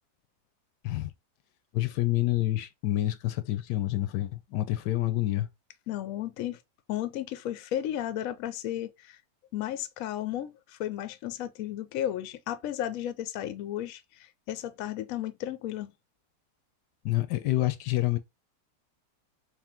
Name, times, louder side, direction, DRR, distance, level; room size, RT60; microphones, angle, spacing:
voice 1, 1.7-5.5 17.0-18.2, left 16 dB, 85° left, 1.2 m, -28 dB
voice 2, 5.9-6.6 6.9-9.2 9.5-15.9, left 12 dB, 70° left, 0.9 m, -34 dB
3.5 x 2.6 x 3.5 m
omnidirectional pair, 1.8 m